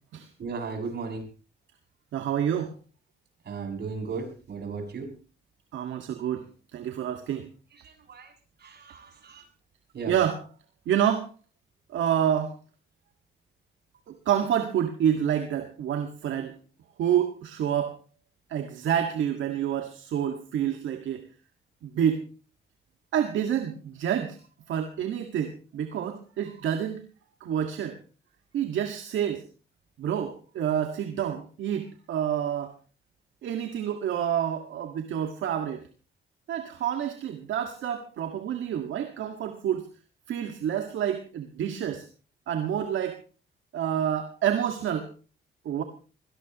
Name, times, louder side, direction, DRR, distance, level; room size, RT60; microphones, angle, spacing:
voice 1, 0.4-1.3 3.5-5.1 7.8-8.3 8.6-9.4 9.9-10.2, right 4 dB, 55° right, 3 dB, 7.2 m, -36 dB
voice 2, 2.1-2.7 5.7-6.5 6.7-7.5 10.1-10.4 10.9-11.3 11.9-12.6 14.1-16.5 17.0-18.0 18.5-21.2 21.8-22.2 23.1-24.4 24.7-27.0 27.4-28.0 28.5-29.4 30.0-32.7 33.4-35.8 36.5-39.9 40.3-42.0 42.5-43.2 43.7-45.1 45.7-45.8, right 9 dB, 75° right, 6 dB, 1.9 m, -28 dB
23.5 x 18.0 x 3.0 m, 0.36 s
cardioid pair, 90°, 20 cm